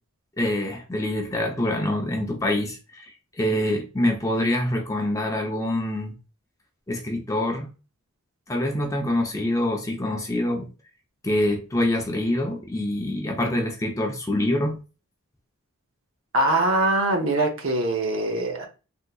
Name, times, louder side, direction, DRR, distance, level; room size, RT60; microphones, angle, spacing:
voice 1, 0.4-6.1 6.9-7.7 8.5-10.7 11.2-14.8, left 1 dB, 15° left, 0.5 m, -25 dB
voice 2, 16.3-18.7, right 2 dB, 65° right, 0.8 m, -22 dB
3.6 x 2.8 x 2.2 m
head